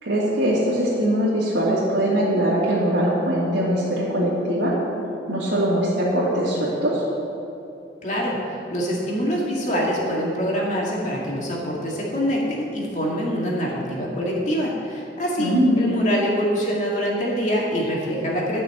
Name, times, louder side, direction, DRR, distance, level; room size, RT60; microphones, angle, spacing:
voice 1, 0.0-4.7 5.3-7.0 15.4-15.8, equal, 75° right, -11 dB, 2.6 m, -21 dB
voice 2, 8.0-18.6, equal, 40° left, -3 dB, 2.4 m, -25 dB
13.0 x 6.2 x 7.6 m, 2.8 s
head